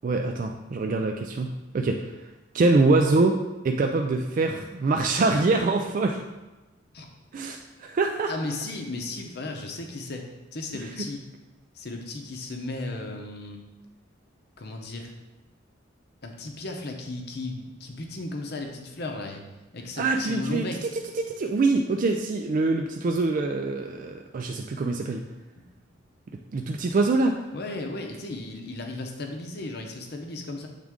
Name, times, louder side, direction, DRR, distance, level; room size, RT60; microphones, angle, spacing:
voice 1, 0.0-2.1 2.5-3.4 3.6-6.2 7.3-8.3 10.8-10.9 20.0-20.6 21.2-25.2 26.5-27.3, right 3 dB, 40° right, 3 dB, 0.3 m, -24 dB
voice 2, 8.3-10.3 10.5-11.3 11.7-13.6 14.6-15.1 16.2-19.4 19.7-20.9 25.6-25.8 27.5-30.7, left 2 dB, 55° left, 3 dB, 0.7 m, -35 dB
7.4 x 3.6 x 3.6 m, 1.1 s
head